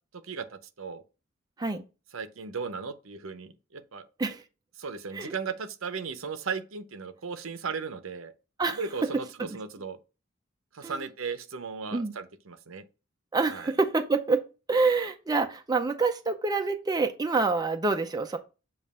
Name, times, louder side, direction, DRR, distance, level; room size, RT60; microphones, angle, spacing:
voice 1, 0.2-1.0 2.1-4.0 4.8-8.3 8.7-10.0 10.7-12.8 13.5-13.7, right 5 dB, 70° right, 0.7 m, -36 dB
voice 2, 9.1-9.6 10.8-11.1 11.9-12.1 13.3-18.4, right 3 dB, 20° right, 0.5 m, -27 dB
7.3 x 2.5 x 5.4 m
head